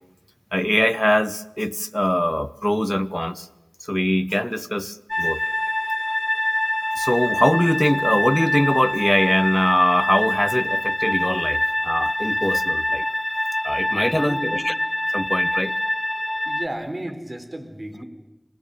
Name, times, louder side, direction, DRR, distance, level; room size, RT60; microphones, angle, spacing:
voice 1, 0.5-3.5 3.8-5.4 7.0-13.1 13.6-14.7 15.1-15.7, equal, 15° left, 14 dB, 1.0 m, -22 dB
sound 1, 5.1-16.7, left 1 dB, 35° left, 1.3 m, -24 dB
voice 2, 14.1-14.6 16.4-18.0, right 1 dB, 55° right, 6 dB, 4.2 m, -33 dB
25.5 x 18.5 x 9.2 m, 0.97 s
wide cardioid pair, 45°, 0 cm